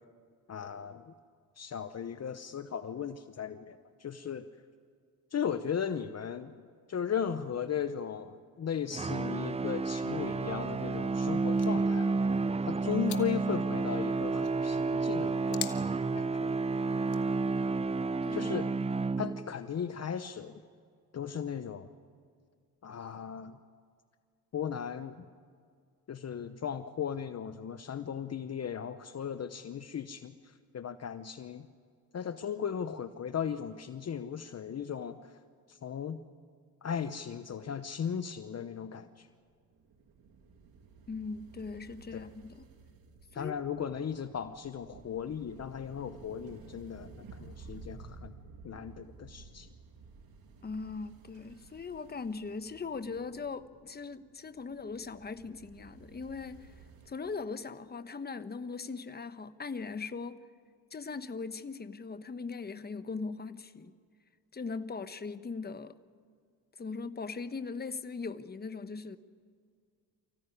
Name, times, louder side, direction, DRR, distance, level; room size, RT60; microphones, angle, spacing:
voice 1, 0.5-1.0 1.6-4.5 5.3-6.6 6.9-12.2 12.7-15.6 16.1-16.6 18.3-18.7 19.2-20.6 21.1-21.9 22.8-23.6 24.5-25.2 26.1-30.3 30.7-31.7 32.1-35.2 35.7-36.2 36.8-39.3 42.1-42.3 43.3-48.3 48.6-49.7, left 8 dB, 45° left, 10 dB, 0.9 m, -36 dB
sound 1, 8.9-19.7, right 3 dB, 15° right, 0.5 m, -31 dB
sound 2, 9.6-17.3, left 13 dB, 80° left, 1.4 m, -48 dB
sound 3, 39.5-57.1, right 4 dB, 70° right, 2.4 m, -54 dB
voice 2, 41.1-42.7 43.3-43.5 50.6-56.7 57.1-60.4 60.9-63.9 64.5-65.9 66.8-69.2, left 4 dB, 25° left, 11 dB, 1.1 m, -40 dB
25.0 x 15.5 x 9.9 m, 2.1 s
cardioid pair, 80°, 37 cm